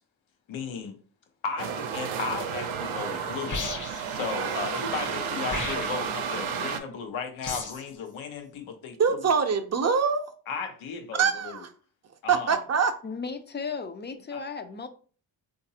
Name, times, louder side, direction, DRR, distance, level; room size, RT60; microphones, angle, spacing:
voice 1, 0.5-1.0 1.4-3.6 4.1-9.3 10.5-11.6 12.2-12.6 14.3-14.4, left 5 dB, 85° left, 0.8 m, -35 dB
sound 1, 1.6-6.8, right 7 dB, 85° right, 0.6 m, -32 dB
sound 2, 3.5-4.1 5.4-6.1 7.4-7.9, left 4 dB, 40° left, 0.8 m, -34 dB
voice 2, 9.0-10.3 11.1-11.7 12.3-13.0, right 6 dB, 35° right, 0.6 m, -24 dB
voice 3, 13.0-14.9, left 5 dB, 25° left, 0.4 m, -35 dB
3.9 x 2.5 x 2.7 m
cardioid pair, 65°, 47 cm